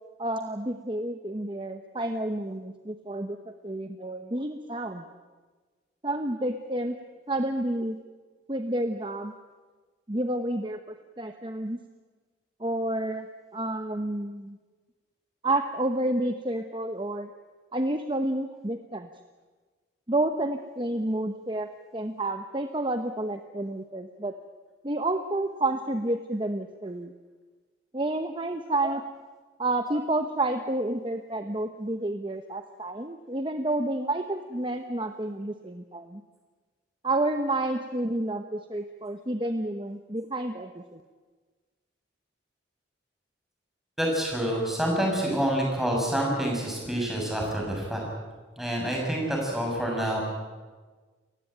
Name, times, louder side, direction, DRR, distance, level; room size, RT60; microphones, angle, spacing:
voice 1, 0.2-5.0 6.0-7.0 7.3-8.0 8.5-9.3 10.1-11.8 12.6-13.3 13.5-14.6 15.4-17.3 17.7-19.1 20.1-24.3 24.8-27.1 27.9-29.0 29.6-36.2 37.0-41.0, right 1 dB, 25° right, 6 dB, 1.0 m, -30 dB
voice 2, 44.0-48.1 48.6-50.2, right 1 dB, ahead, -2 dB, 6.7 m, -27 dB
28.5 x 15.5 x 9.0 m, 1.4 s
head